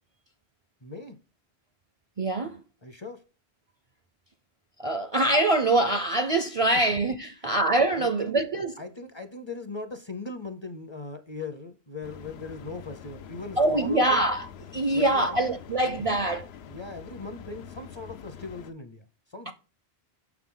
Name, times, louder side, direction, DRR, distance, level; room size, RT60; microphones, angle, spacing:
voice 1, 0.8-1.2 2.8-3.2 7.4-7.5 7.9-8.4 8.8-14.2 14.9-15.6 15.8-16.3 16.7-19.0 19.3-19.5, left 3 dB, 30° left, 0.6 m, -39 dB
voice 2, 2.2-2.6 4.8-8.7 13.6-16.5 19.5-19.6, right 2 dB, 45° right, 0.5 m, -24 dB
sound 1, 12.0-18.7, left 8 dB, 80° left, 0.8 m, -45 dB
6.6 x 6.0 x 3.7 m
omnidirectional pair, 1.1 m